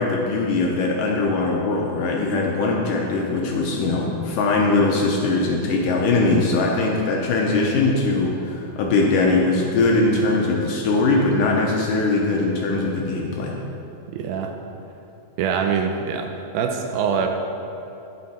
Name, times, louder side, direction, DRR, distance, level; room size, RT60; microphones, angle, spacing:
voice 1, 0.0-13.5, left 3 dB, 75° left, -1 dB, 2.1 m, -21 dB
voice 2, 14.1-14.5 15.4-16.3 16.5-17.3, right 6 dB, 80° right, 4 dB, 2.3 m, -23 dB
14.5 x 5.6 x 4.2 m, 2.9 s
omnidirectional pair, 4.4 m